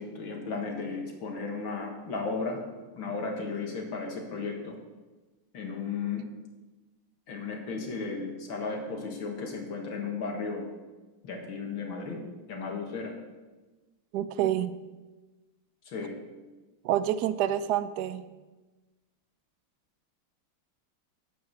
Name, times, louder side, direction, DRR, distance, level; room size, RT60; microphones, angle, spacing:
voice 1, 0.0-2.6 3.0-4.8 5.5-6.2 7.3-10.7 11.2-12.2 12.5-13.1 15.9-16.2, left 4 dB, 65° left, 1 dB, 2.4 m, -34 dB
voice 2, 14.1-14.7 16.8-18.2, right 11 dB, 80° right, 13 dB, 0.9 m, -27 dB
9.5 x 8.4 x 7.1 m, 1.2 s
omnidirectional pair, 2.4 m